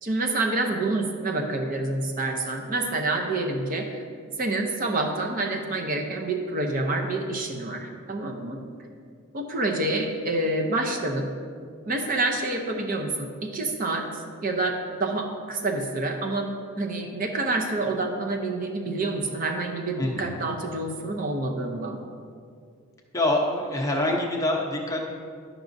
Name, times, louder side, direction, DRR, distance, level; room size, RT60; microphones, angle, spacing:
voice 1, 0.0-4.0 4.3-8.6 9.3-11.3 11.9-14.7 15.0-22.0, right 2 dB, 40° right, 3 dB, 0.7 m, -28 dB
voice 2, 20.0-20.4 23.1-25.0, left 1 dB, 15° left, -1 dB, 0.8 m, -25 dB
10.5 x 6.1 x 2.6 m, 2.2 s
head